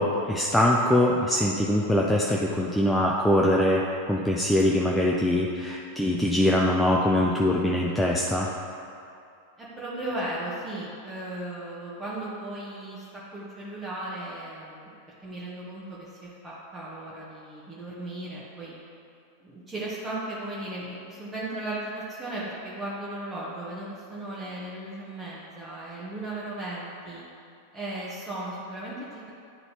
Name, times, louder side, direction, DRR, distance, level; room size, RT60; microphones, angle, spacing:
voice 1, 0.0-3.8 4.1-8.5, left 1 dB, 5° left, -3 dB, 0.4 m, -23 dB
voice 2, 9.6-18.7 19.4-27.2 27.7-29.3, right 1 dB, 15° right, -8 dB, 1.1 m, -36 dB
10.0 x 4.0 x 2.9 m, 2.5 s
figure-of-eight pair, 90°, 0 cm